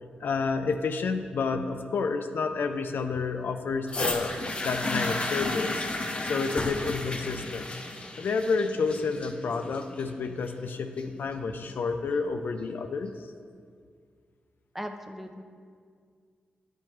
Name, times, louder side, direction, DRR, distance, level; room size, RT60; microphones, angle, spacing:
voice 1, 0.2-4.3 4.6-5.9 6.2-7.7 8.2-13.3, left 4 dB, 70° left, 7 dB, 0.4 m, -30 dB
sound 1, 3.9-11.9 12.7-12.8, left 2 dB, 30° left, 0.7 m, -33 dB
voice 2, 14.7-15.4, equal, 10° right, 5 dB, 0.5 m, -38 dB
9.1 x 4.3 x 3.2 m, 2.1 s
cardioid pair, 60°, 4 cm